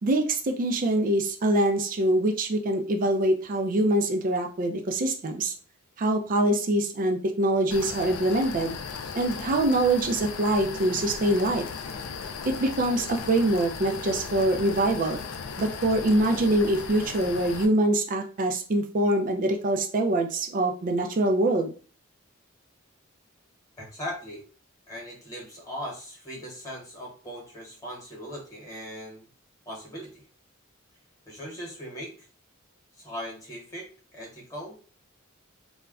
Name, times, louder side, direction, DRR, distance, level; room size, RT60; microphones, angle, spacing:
voice 1, 0.0-5.5 6.0-8.8 9.2-11.6 12.4-15.2 15.6-21.7, right 1 dB, 40° right, 3 dB, 0.4 m, -24 dB
sound 1, 7.7-17.7, left 5 dB, 70° left, 0.4 m, -37 dB
voice 2, 23.8-24.4 24.9-29.3 29.6-30.2 31.3-32.1 32.9-34.8, equal, 15° left, -3 dB, 1.0 m, -39 dB
2.3 x 2.1 x 3.5 m, 0.40 s
head